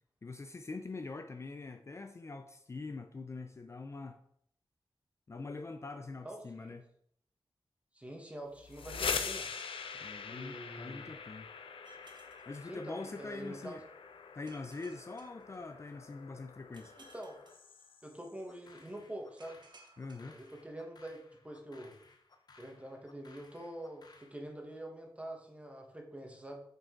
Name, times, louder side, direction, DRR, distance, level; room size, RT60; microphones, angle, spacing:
voice 1, 0.2-4.2 5.3-6.8 10.0-11.5 12.5-13.8 14.4-16.9 20.0-20.4, left 3 dB, 30° left, 6 dB, 0.4 m, -44 dB
voice 2, 6.2-6.8 7.9-9.5 10.3-11.1 12.7-13.8 17.1-17.4 18.0-19.6 20.3-22.0 22.6-26.6, right 1 dB, 15° right, 1 dB, 1.3 m, -46 dB
sound 1, 8.6-18.3, left 5 dB, 85° left, 0.6 m, -43 dB
sound 2, 11.8-13.5 14.5-16.2 16.7-18.4 19.4-21.1, right 2 dB, 60° right, 1.1 m, -62 dB
sound 3, 18.5-24.4, left 3 dB, 50° left, 0.8 m, -61 dB
7.6 x 5.0 x 3.8 m, 0.69 s
wide cardioid pair, 140°, 9 cm